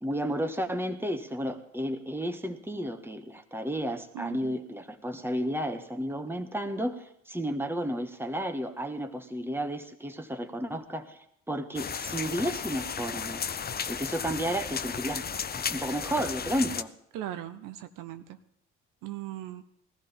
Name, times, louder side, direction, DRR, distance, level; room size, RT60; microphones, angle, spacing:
voice 1, 0.0-11.2 11.5-13.4 13.9-15.3 15.5-16.9, equal, 5° right, 5 dB, 1.6 m, -32 dB
voice 2, 4.1-4.5 17.1-18.4 19.0-19.6, right 13 dB, 70° right, 10 dB, 0.9 m, -39 dB
sound 1, 11.8-16.8, left 7 dB, 30° left, 0.6 m, -34 dB
18.5 x 14.5 x 3.7 m, 0.72 s
hypercardioid pair, 50°, 34 cm